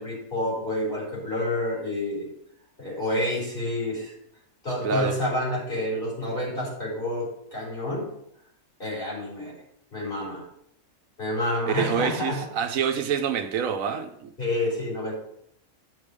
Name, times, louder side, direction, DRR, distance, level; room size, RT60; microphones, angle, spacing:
voice 1, 0.0-2.3 2.8-4.1 4.6-8.1 8.8-9.5 9.9-10.4 11.2-12.4 14.4-15.1, left 1 dB, 40° left, 3.9 m, -28 dB
voice 2, 4.8-5.2 11.7-14.3, right 7 dB, 75° right, 1.1 m, -27 dB
9.7 x 5.0 x 5.2 m
omnidirectional pair, 1.4 m